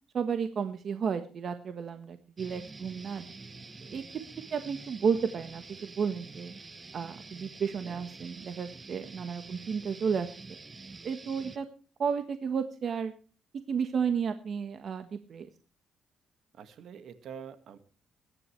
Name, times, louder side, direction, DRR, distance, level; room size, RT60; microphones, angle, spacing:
voice 1, 0.1-3.2 3.9-4.0 4.5-6.5 6.9-10.6 11.0-11.7 12.0-13.1 13.7-15.5, right 6 dB, 55° right, 8 dB, 1.3 m, -32 dB
sound 1, 2.4-11.6, right 3 dB, 30° right, 1.1 m, -47 dB
voice 2, 16.5-17.8, right 7 dB, 70° right, 10 dB, 1.8 m, -46 dB
22.5 x 10.5 x 3.3 m, 0.37 s
cardioid pair, 90°, 0 cm